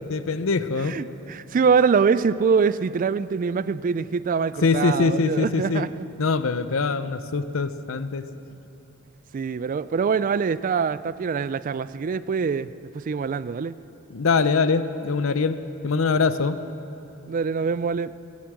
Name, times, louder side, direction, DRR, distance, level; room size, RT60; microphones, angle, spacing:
voice 1, 0.1-1.0 4.6-5.8 6.2-8.2 14.1-15.6 15.8-16.6, left 4 dB, 75° left, 12 dB, 0.7 m, -23 dB
voice 2, 0.8-6.1 9.3-12.7 13.1-13.8 17.3-18.1, right 5 dB, 40° right, 16 dB, 0.3 m, -24 dB
15.0 x 11.5 x 7.6 m, 2.8 s
head